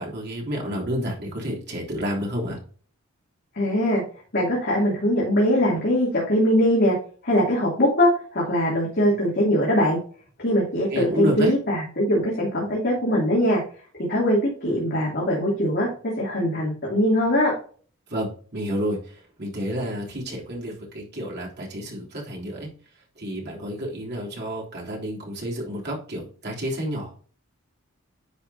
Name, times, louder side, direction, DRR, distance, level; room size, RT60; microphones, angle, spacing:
voice 1, 0.0-2.6 10.9-11.5 18.1-22.7 23.2-27.2, equal, 55° right, -2 dB, 3.3 m, -30 dB
voice 2, 3.5-4.0 4.3-7.0 7.2-10.0 10.4-13.6 14.1-15.9 16.2-17.5, equal, 50° left, -5 dB, 2.8 m, -21 dB
10.0 x 6.0 x 2.8 m, 0.43 s
head